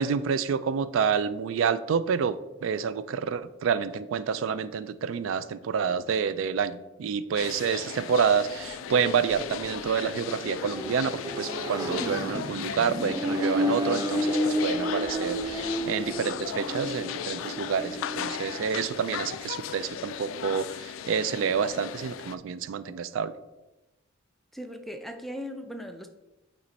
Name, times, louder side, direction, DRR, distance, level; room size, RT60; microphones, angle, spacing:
voice 1, 0.0-2.4 2.6-23.3, right 6 dB, 75° right, 0.3 m, -28 dB
sound 1, 7.4-22.4, left 9 dB, 80° left, 0.3 m, -37 dB
Accelerating revving vroom, 8.4-18.8, equal, 20° right, 0.8 m, -32 dB
voice 2, 24.5-26.1, equal, ahead, 0.4 m, -38 dB
7.9 x 3.2 x 4.0 m
head